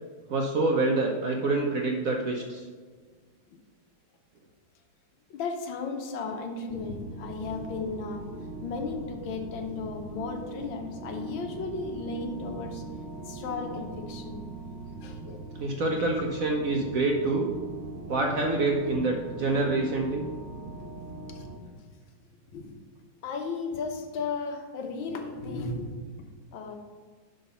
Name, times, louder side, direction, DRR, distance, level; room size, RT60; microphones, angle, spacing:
voice 1, 0.3-2.6 15.6-17.5 18.1-20.3, right 2 dB, 60° right, 1 dB, 0.9 m, -26 dB
voice 2, 5.3-8.3 8.6-12.8 13.2-14.4 15.0-15.5 15.9-16.3 21.3-21.5 21.7-21.8 22.5-22.8 23.2-26.0 26.5-26.8, left 4 dB, 80° left, 4 dB, 1.7 m, -35 dB
sound 1, 6.7-21.6, right 3 dB, 90° right, 1.5 m, -41 dB
11.0 x 4.0 x 5.5 m, 1.5 s
omnidirectional pair, 2.1 m